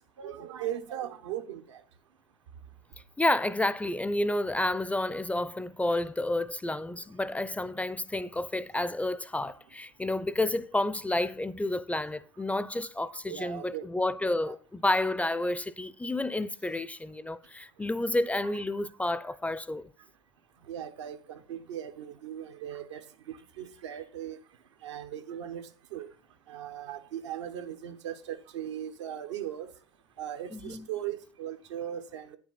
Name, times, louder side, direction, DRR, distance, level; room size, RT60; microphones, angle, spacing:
voice 1, 0.2-1.8 13.3-13.8 14.4-14.6 20.7-23.0 23.3-24.4 24.8-26.1 26.5-29.7 30.2-32.4, right 10 dB, 75° right, 1.2 m, -38 dB
voice 2, 3.2-19.9 30.5-30.9, left 2 dB, 10° left, 0.6 m, -30 dB
9.4 x 6.1 x 5.7 m
hypercardioid pair, 75°, 15 cm